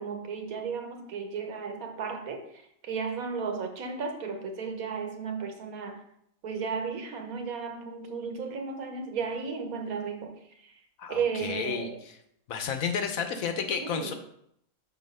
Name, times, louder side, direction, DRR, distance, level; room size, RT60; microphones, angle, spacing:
voice 1, 0.0-6.0 6.4-10.3 10.6-10.7 11.1-12.0 13.7-14.1, right 5 dB, 80° right, 5 dB, 1.4 m, -34 dB
voice 2, 11.0-11.9 12.5-14.1, left 6 dB, 75° left, 6 dB, 1.2 m, -31 dB
6.3 x 4.1 x 5.3 m, 0.73 s
omnidirectional pair, 1.5 m